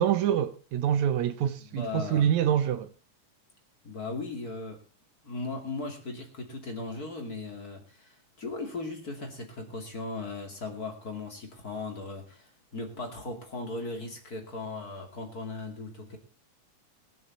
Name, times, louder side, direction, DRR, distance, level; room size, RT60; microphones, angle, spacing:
voice 1, 0.0-2.9, right 9 dB, 75° right, 2.1 m, -26 dB
voice 2, 1.6-2.3 3.8-4.8 5.2-16.2, left 3 dB, 30° left, 2.9 m, -37 dB
23.5 x 7.9 x 4.1 m
omnidirectional pair, 3.5 m